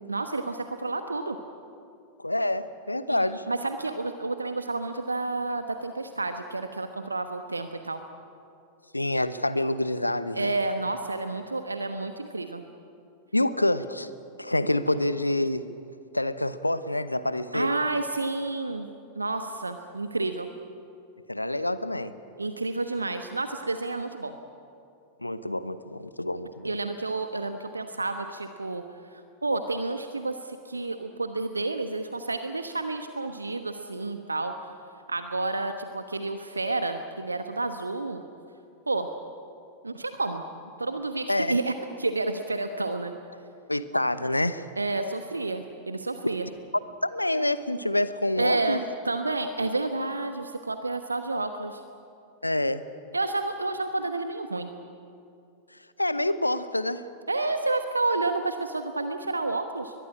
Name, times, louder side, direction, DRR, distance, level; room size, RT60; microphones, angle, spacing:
voice 1, 0.1-1.4 3.1-3.2 3.5-8.0 10.3-12.6 17.5-18.9 19.2-20.5 22.4-24.4 26.6-28.8 29.1-34.5 35.1-38.2 38.9-39.1 39.8-40.4 40.8-43.1 44.8-46.5 48.4-51.8 53.1-54.7 57.3-59.9, right 2 dB, 80° right, 8 dB, 1.1 m, -30 dB
voice 2, 2.2-3.5 8.9-10.5 13.3-14.1 14.4-15.6 16.1-17.7 21.3-22.2 25.2-26.8 41.3-41.6 43.7-44.7 47.0-48.8 52.4-52.8 56.0-57.0, left 1 dB, 85° left, 14 dB, 0.9 m, -27 dB
22.0 x 22.0 x 8.6 m, 2.5 s
figure-of-eight pair, 90°, 0 cm